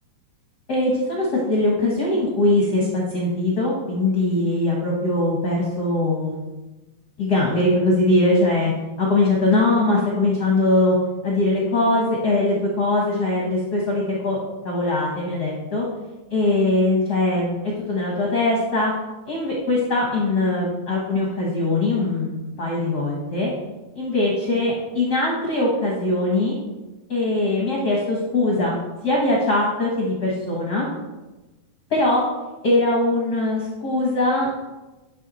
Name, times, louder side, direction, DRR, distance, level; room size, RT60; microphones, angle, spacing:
voice 1, 0.7-6.4 7.2-8.7 9.0-11.0 11.2-14.4 14.6-15.8 16.3-18.9 19.3-23.5 23.9-26.6 27.1-28.8 29.0-30.9 31.9-32.2 32.6-34.5, left 2 dB, 50° left, -3 dB, 1.2 m, -21 dB
11.0 x 4.8 x 4.1 m, 1.1 s
omnidirectional pair, 3.5 m